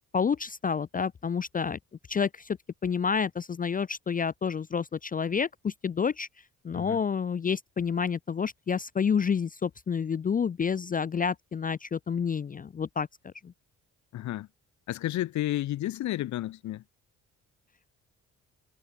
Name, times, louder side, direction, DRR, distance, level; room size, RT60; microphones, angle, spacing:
voice 1, 0.1-1.8 2.1-2.6 2.8-6.3 6.6-13.5, left 6 dB, 30° left, 0.5 m, -29 dB
voice 2, 14.1-14.5 14.9-16.8, left 14 dB, 70° left, 0.8 m, -31 dB
cardioid pair, 90°, 30 cm